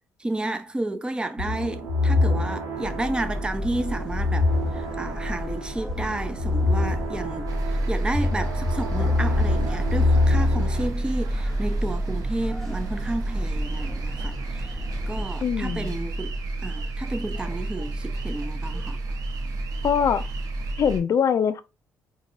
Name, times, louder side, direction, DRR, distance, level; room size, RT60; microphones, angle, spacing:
voice 1, 0.2-4.5 4.7-14.8 15.1-16.3 16.6-19.0, right 2 dB, 15° right, 0.5 m, -31 dB
sound 1, 1.4-10.9, left 2 dB, 80° right, 1.2 m, -25 dB
sound 2, 2.8-15.3, left 1 dB, 5° left, 0.9 m, -34 dB
sound 3, 7.5-21.0, right 2 dB, 65° right, 0.7 m, -30 dB
voice 2, 15.4-16.0 19.8-20.3 20.8-21.6, left 7 dB, 50° left, 0.4 m, -23 dB
3.8 x 2.6 x 2.6 m
supercardioid pair, 65°, 7 cm